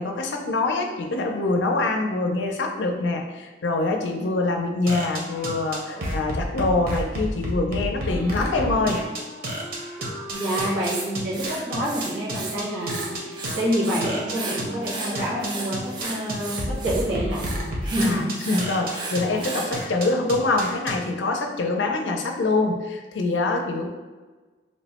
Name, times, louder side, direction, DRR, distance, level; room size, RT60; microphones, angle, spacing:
voice 1, 0.0-9.0 18.0-23.9, left 3 dB, 80° left, 3 dB, 0.5 m, -25 dB
sound 1, 4.9-20.9, equal, 55° right, 0.7 m, -30 dB
Wind instrument woodwind instrument, 8.0-16.1, equal, 25° left, 0.5 m, -42 dB
Writing, 10.3-12.6 12.8-14.0 14.3-19.7, right 3 dB, 25° right, 0.4 m, -34 dB
voice 2, 10.3-18.4, equal, 80° right, -8 dB, 1.1 m, -27 dB
3.1 x 2.1 x 4.1 m, 1.3 s
head